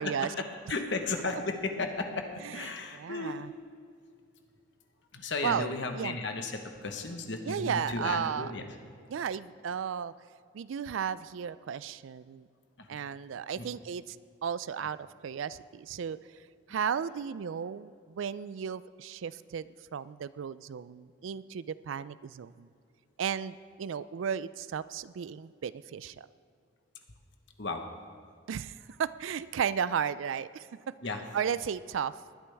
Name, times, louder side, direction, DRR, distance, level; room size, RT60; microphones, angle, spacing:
voice 1, 0.0-3.4 5.1-8.7 12.8-12.9 13.5-13.7 27.6-27.8 31.0-31.2, left 3 dB, 60° left, 5 dB, 1.2 m, -34 dB
voice 2, 2.9-3.5 5.4-5.7 6.0-6.2 7.5-8.5 9.1-10.1 10.5-12.5 12.9-14.2 14.4-16.2 16.7-22.7 23.2-26.3 28.5-30.9 31.3-32.2, right 7 dB, 70° right, 17 dB, 0.3 m, -34 dB
20.0 x 10.0 x 3.5 m, 2.3 s
head